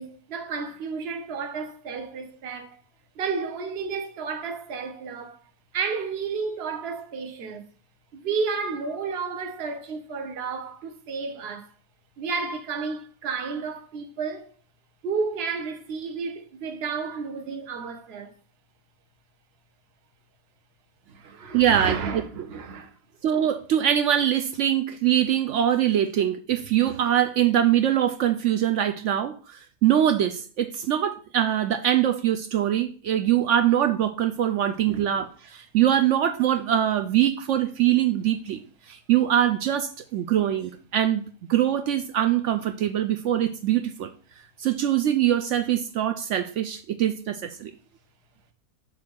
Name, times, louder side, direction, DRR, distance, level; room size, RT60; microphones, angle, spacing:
voice 1, 0.0-2.8 3.1-5.4 5.7-7.6 8.1-11.7 12.2-14.5 15.0-18.3 21.1-22.9 34.9-35.1, right 5 dB, 45° right, 1.0 m, -32 dB
voice 2, 21.5-22.5 23.2-38.6 38.9-44.1 44.6-47.7, right 11 dB, 70° right, 0.7 m, -23 dB
6.7 x 3.4 x 6.2 m
omnidirectional pair, 1.6 m